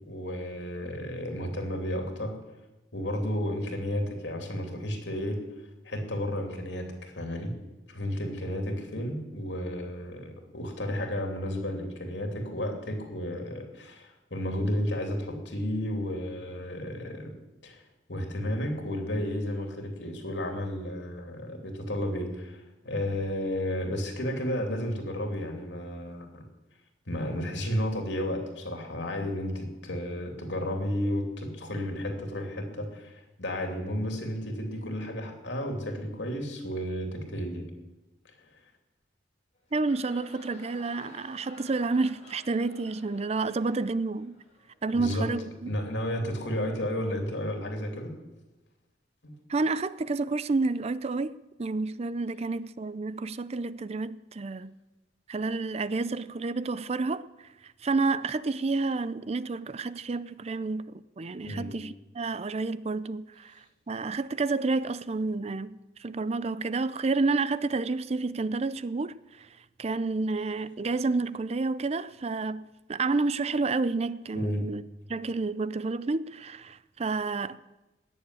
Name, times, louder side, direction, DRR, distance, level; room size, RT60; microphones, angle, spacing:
voice 1, 0.0-2.3 2.9-5.4 5.8-7.5 7.9-17.3 17.6-17.8 18.1-26.4 27.1-37.7 44.9-45.3 45.7-48.1 49.2-49.4 61.4-61.8 74.3-74.7, left 1 dB, 80° left, 3.0 m, -32 dB
sound 1, 39.6-45.1, left 2 dB, 40° left, 3.9 m, -54 dB
voice 2, 39.7-44.4 44.8-45.7 49.5-51.3 51.6-54.7 55.3-57.3 57.8-63.5 63.9-69.5 69.8-74.8 75.1-77.6, right 3 dB, 35° right, 0.5 m, -30 dB
17.5 x 7.2 x 9.8 m
head